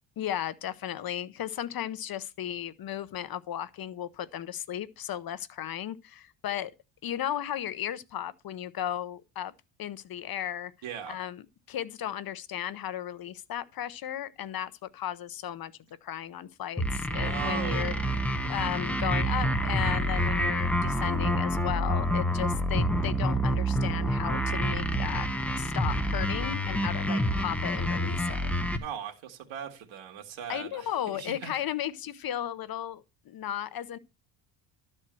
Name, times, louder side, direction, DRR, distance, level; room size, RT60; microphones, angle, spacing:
voice 1, 0.2-6.7 7.0-9.5 9.8-10.7 11.1-15.7 16.0-17.9 18.5-25.3 25.6-28.4 28.7-28.8 30.5-34.0, left 11 dB, 45° left, 0.8 m, -35 dB
voice 2, 10.8-11.2 17.2-18.1 28.8-31.5, right 9 dB, 65° right, 2.1 m, -39 dB
sound 1, 16.8-28.8, equal, 5° left, 0.8 m, -28 dB
12.5 x 4.5 x 7.6 m
cardioid pair, 130°, 49 cm